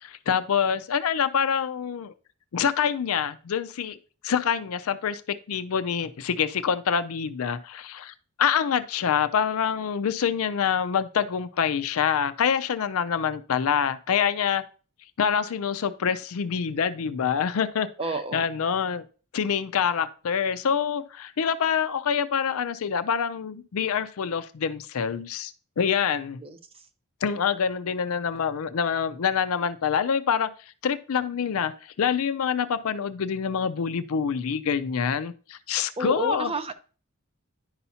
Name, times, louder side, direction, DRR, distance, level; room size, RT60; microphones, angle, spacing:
voice 1, 0.0-2.1 2.5-4.0 4.2-5.2 5.5-14.6 15.2-19.0 19.3-26.4 27.2-30.5 30.8-36.5, left 7 dB, 70° left, 0.5 m, -26 dB
voice 2, 18.0-18.5 26.4-26.6 36.0-36.7, right 2 dB, 25° right, 0.7 m, -30 dB
10.5 x 5.6 x 2.8 m
head